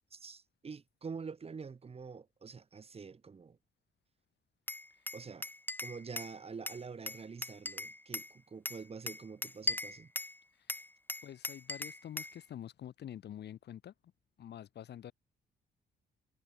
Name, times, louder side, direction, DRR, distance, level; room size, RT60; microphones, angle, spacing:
voice 1, 0.1-3.6 5.1-5.5 5.8-10.1, right 5 dB, 30° right, 2.2 m, -46 dB
Glass, 4.7-6.3 6.7-8.3 8.7-10.4 10.7-12.4, left 2 dB, 10° left, 3.1 m, -39 dB
voice 2, 11.2-13.9 14.4-15.1, left 10 dB, 65° left, 4.3 m, -47 dB
cardioid pair, 105°, 19 cm